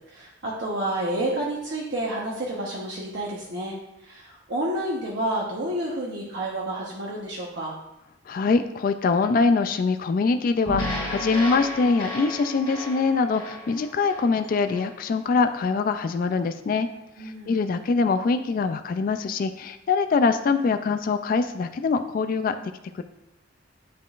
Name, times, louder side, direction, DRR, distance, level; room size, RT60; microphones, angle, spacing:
voice 1, 0.1-3.8 4.0-7.8 17.2-17.6, right 1 dB, 65° right, -4 dB, 0.9 m, -30 dB
voice 2, 8.3-16.9 17.2-22.6 22.9-23.0, left 4 dB, 45° left, 10 dB, 0.3 m, -23 dB
sound 1, 10.7-15.0, left 1 dB, 25° left, 2.1 m, -33 dB
10.5 x 3.7 x 2.4 m, 0.88 s
head